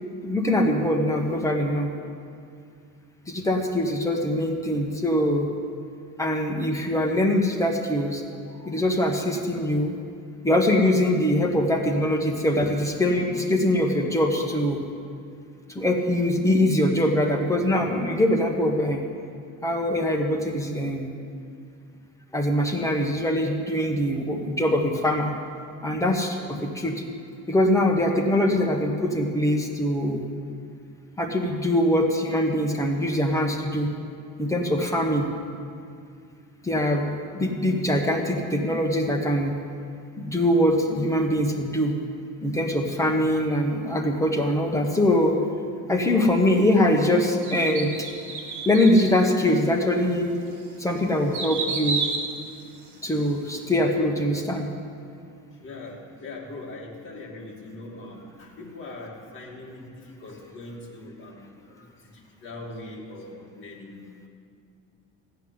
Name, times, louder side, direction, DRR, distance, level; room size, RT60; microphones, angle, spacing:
voice 1, 0.2-1.9 3.3-5.5 6.2-8.2 8.6-9.9 10.4-14.8 15.7-19.0 19.6-21.1 22.3-25.3 25.8-27.0 27.5-30.2 31.2-33.9 34.4-35.3 36.6-39.5 40.2-41.9 42.4-45.4 45.9-47.9 48.6-50.4 50.8-52.0 53.0-54.7, left 1 dB, 10° left, 1 dB, 1.3 m, -23 dB
sound 1, 47.4-49.2 49.8-49.9 50.5-53.3 53.6-53.7, right 4 dB, 65° right, 2.0 m, -31 dB
voice 2, 55.6-64.3, left 2 dB, 35° left, -3 dB, 2.6 m, -41 dB
15.5 x 5.8 x 9.6 m, 2.3 s
cardioid pair, 150°, 32 cm